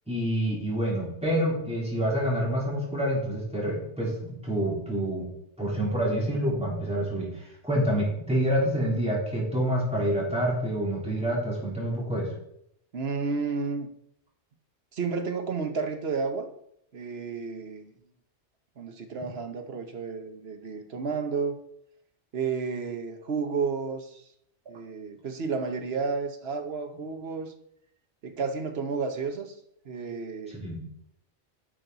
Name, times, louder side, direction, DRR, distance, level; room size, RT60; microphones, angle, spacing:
voice 1, 0.1-5.3 5.6-12.3 30.5-30.8, equal, 5° right, -5 dB, 3.5 m, -27 dB
voice 2, 12.9-13.9 14.9-16.5 16.9-17.9 18.8-21.6 22.3-24.2 24.7-27.5 28.2-29.6 29.8-30.6, right 5 dB, 65° right, 6 dB, 1.3 m, -31 dB
10.0 x 6.4 x 4.0 m, 0.74 s
omnidirectional pair, 1.2 m